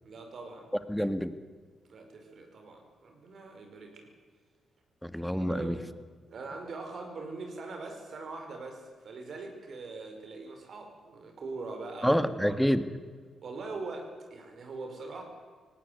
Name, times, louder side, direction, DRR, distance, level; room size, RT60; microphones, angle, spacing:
voice 1, 0.0-0.6 1.9-4.1 5.4-5.9 6.3-12.5 13.4-15.2, right 3 dB, 60° right, 4 dB, 5.1 m, -42 dB
voice 2, 0.9-1.3 5.0-5.8 12.0-12.8, equal, ahead, 11 dB, 1.7 m, -27 dB
18.5 x 17.0 x 9.6 m, 1.5 s
hypercardioid pair, 45°, 0 cm